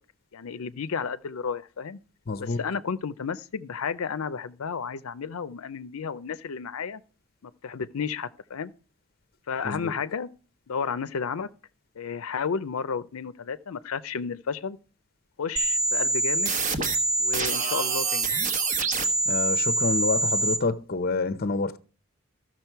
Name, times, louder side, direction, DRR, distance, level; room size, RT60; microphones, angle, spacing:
voice 1, 0.3-2.0 2.4-7.0 7.4-8.7 9.5-10.3 10.7-11.5 12.0-14.8 15.4-16.5 17.2-18.5, left 6 dB, 85° left, 0.5 m, -32 dB
voice 2, 2.3-2.6 9.6-9.9 19.3-21.8, left 3 dB, 45° left, 0.6 m, -28 dB
sound 1, 15.6-20.6, right 3 dB, 35° right, 1.0 m, -25 dB
14.0 x 6.2 x 4.5 m
head